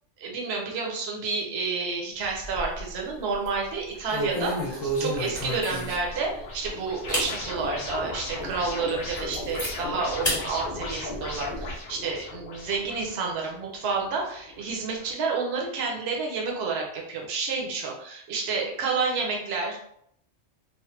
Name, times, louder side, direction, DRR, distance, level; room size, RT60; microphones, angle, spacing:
voice 1, 0.2-19.8, right 4 dB, 65° right, -1 dB, 0.9 m, -30 dB
sound 1, 2.3-3.0 3.3-3.6 4.1-6.2 6.6-6.7 7.1-7.3 7.9-8.0 8.5-8.6 8.9-9.7 10.2-10.4 10.8-11.7, equal, 15° left, 1.2 m, -30 dB
sound 2, 3.6-15.1, left 2 dB, 55° left, 0.9 m, -38 dB
3.2 x 2.1 x 3.1 m, 0.71 s
omnidirectional pair, 1.2 m